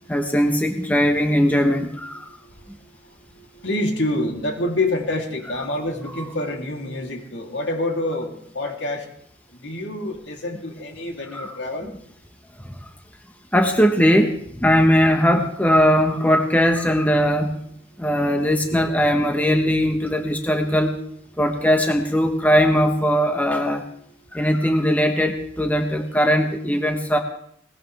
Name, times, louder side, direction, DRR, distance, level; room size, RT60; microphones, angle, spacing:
voice 1, 0.1-2.3 11.3-11.6 12.6-12.9 13.5-17.6 18.0-21.0 21.4-23.8 24.3-27.2, equal, 10° left, 4 dB, 1.1 m, -19 dB
voice 2, 2.3-9.1 9.5-11.9, left 1 dB, 70° left, 1 dB, 3.1 m, -27 dB
21.0 x 19.5 x 3.4 m, 0.67 s
head